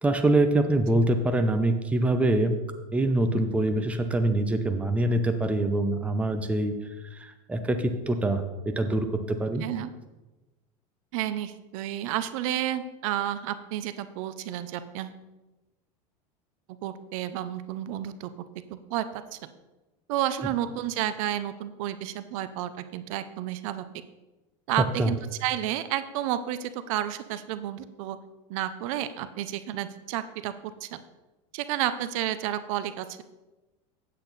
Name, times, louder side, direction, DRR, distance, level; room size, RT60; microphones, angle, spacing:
voice 1, 0.0-2.5 2.9-6.7 7.2-8.4 8.8-9.6 25.0-25.1, right 1 dB, 5° right, 7 dB, 0.6 m, -24 dB
voice 2, 9.6-9.9 11.1-15.2 16.8-18.3 18.7-19.5 20.1-23.8 24.7-28.2 28.5-31.0 31.5-33.2, right 12 dB, 70° right, 12 dB, 0.6 m, -31 dB
8.5 x 8.2 x 4.1 m, 1.1 s
supercardioid pair, 135°, 18 cm